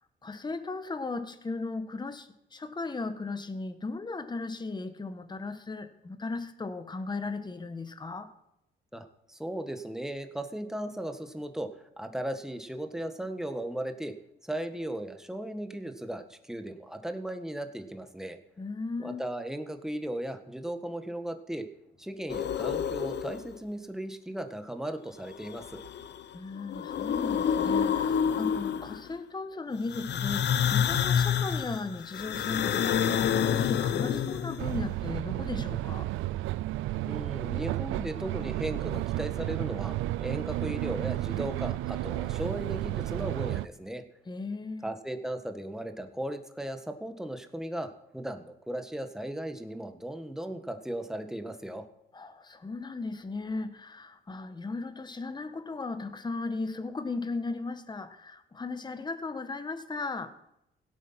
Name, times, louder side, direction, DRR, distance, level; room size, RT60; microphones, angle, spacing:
voice 1, 0.2-8.3 18.6-19.2 26.3-36.1 44.2-44.9 52.1-60.3, left 3 dB, 20° left, 9 dB, 1.3 m, -36 dB
voice 2, 8.9-11.7 12.0-14.1 14.4-18.4 19.0-21.7 22.0-25.8 37.0-44.0 44.8-51.9, right 1 dB, ahead, 6 dB, 1.5 m, -36 dB
sound 1, 22.3-23.6 25.3-26.2 26.6-29.1 29.9-34.8, left 8 dB, 60° left, 0.8 m, -28 dB
sound 2, 34.6-43.7, right 16 dB, 90° right, 0.4 m, -32 dB
17.0 x 8.4 x 5.8 m, 0.81 s
cardioid pair, 90°, 20 cm